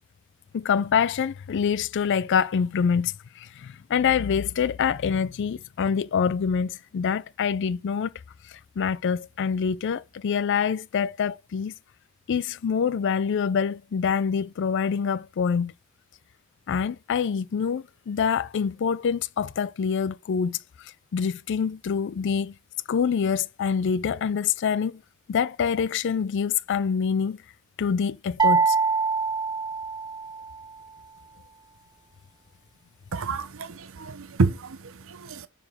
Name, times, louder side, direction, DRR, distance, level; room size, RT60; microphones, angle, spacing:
voice 1, 0.5-8.1 8.8-11.7 12.3-15.7 16.7-20.6 21.1-22.5 22.9-25.0 25.3-27.4 27.8-28.8, left 6 dB, 55° left, 0.4 m, -25 dB
sound 1, 28.4-30.5, right 5 dB, 20° right, 0.5 m, -24 dB
voice 2, 33.1-35.5, right 4 dB, 65° right, 0.6 m, -28 dB
7.2 x 4.2 x 6.4 m
head